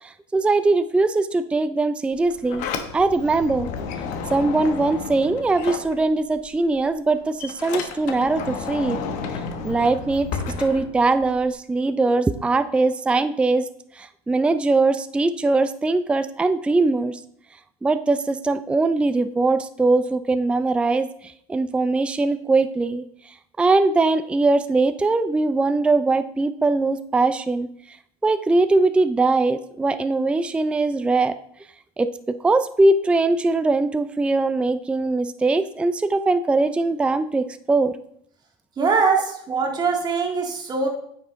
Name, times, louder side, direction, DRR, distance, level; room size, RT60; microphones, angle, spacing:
voice 1, 0.0-3.7 4.3-9.0 9.6-10.3 10.6-13.6 14.0-17.2 17.8-28.0 28.2-31.3 32.0-38.0, right 3 dB, 10° right, 11 dB, 0.4 m, -21 dB
Sliding door, 2.1-6.5 6.8-11.5, left 5 dB, 65° left, 1.1 m, -32 dB
voice 2, 38.8-40.9, right 5 dB, 30° right, 2 dB, 1.9 m, -22 dB
8.7 x 5.8 x 3.7 m, 0.68 s
supercardioid pair, 100°, 14 cm